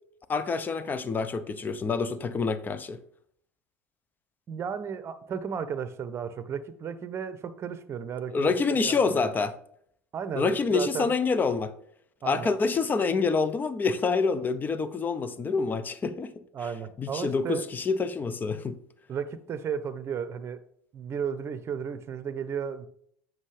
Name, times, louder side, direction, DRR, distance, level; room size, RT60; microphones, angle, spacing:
voice 1, 0.3-3.0 8.3-9.5 10.4-11.7 12.2-16.3 17.0-18.8, left 4 dB, 25° left, 0.7 m, -27 dB
voice 2, 4.5-9.2 10.1-11.1 12.2-12.6 16.5-17.6 19.1-20.6 20.9-22.9, right 7 dB, 35° right, 0.8 m, -34 dB
7.4 x 6.2 x 3.3 m
hypercardioid pair, 75°, 7 cm